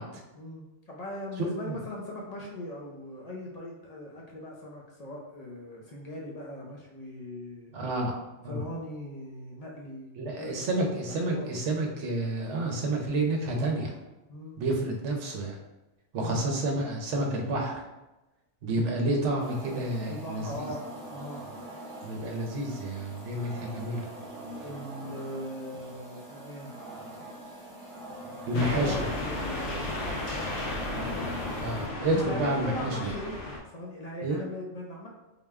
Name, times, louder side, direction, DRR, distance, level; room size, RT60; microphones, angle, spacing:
voice 1, 0.3-7.7 8.5-10.1 10.3-10.7 11.1-11.5 14.3-14.6 16.2-16.5 19.7-21.5 24.6-26.7 28.5-31.3 32.1-33.4 33.7-35.1, left 1 dB, 50° left, -2 dB, 0.5 m, -40 dB
voice 2, 7.7-8.2 8.4-8.6 10.2-13.9 14.6-15.6 16.1-17.8 18.6-20.7 22.0-24.1 28.4-28.9 31.6-33.1 34.2-34.4, right 1 dB, 65° right, 1 dB, 1.0 m, -29 dB
sound 1, 19.4-31.9, right 1 dB, 40° right, 1.0 m, -43 dB
sound 2, 28.5-33.6, left 2 dB, 65° left, 0.9 m, -34 dB
3.8 x 2.2 x 3.5 m, 0.99 s
omnidirectional pair, 1.4 m